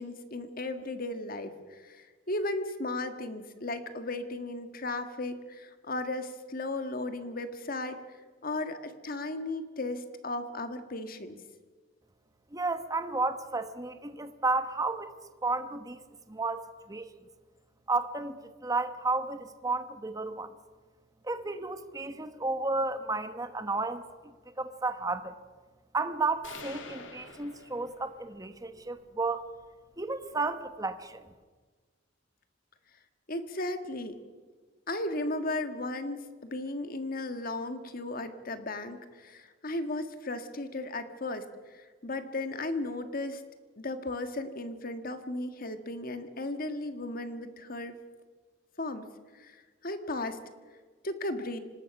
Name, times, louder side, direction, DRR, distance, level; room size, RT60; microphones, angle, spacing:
voice 1, 0.0-8.0 8.4-11.4 33.3-34.2 34.9-43.4 43.8-48.0 48.8-49.0 49.3-50.4 51.0-51.6, left 2 dB, 50° left, 8 dB, 1.7 m, -35 dB
voice 2, 12.5-15.1 15.4-17.1 17.9-20.5 21.2-24.1 24.6-25.3 25.9-29.4 30.0-31.2, right 3 dB, 20° right, 9 dB, 1.2 m, -32 dB
sound 1, 26.4-28.4, left 4 dB, 80° left, 2.3 m, -46 dB
26.0 x 19.5 x 6.0 m, 1.5 s
head